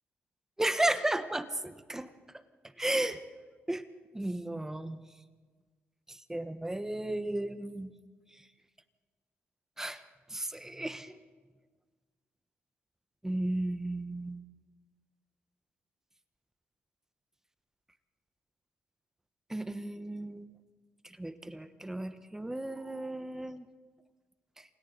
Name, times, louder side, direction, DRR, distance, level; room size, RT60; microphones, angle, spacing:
voice 1, 0.6-2.1 2.8-3.2 3.7-3.8 4.1-5.0 6.1-7.9 9.8-10.0 10.3-11.2 13.2-14.4 19.5-20.5 21.0-23.7 24.6-24.7, right 1 dB, 10° right, 10 dB, 1.2 m, -34 dB
29.0 x 27.0 x 4.0 m, 1.4 s
cardioid pair, 90°, 4 cm